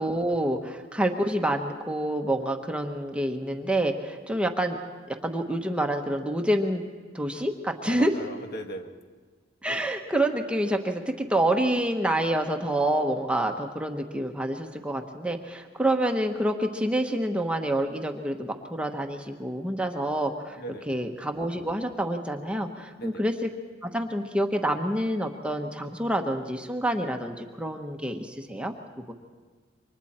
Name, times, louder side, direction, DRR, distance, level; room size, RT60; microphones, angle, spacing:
voice 1, 0.0-4.8 5.1-6.9 7.1-8.1 9.6-20.6 20.9-23.5 23.8-28.7 29.1-29.2, right 1 dB, 5° right, 3 dB, 1.1 m, -27 dB
voice 2, 7.8-8.9 20.6-20.9 23.0-23.2, equal, 55° left, 4 dB, 1.7 m, -38 dB
29.0 x 24.5 x 4.3 m, 1.5 s
head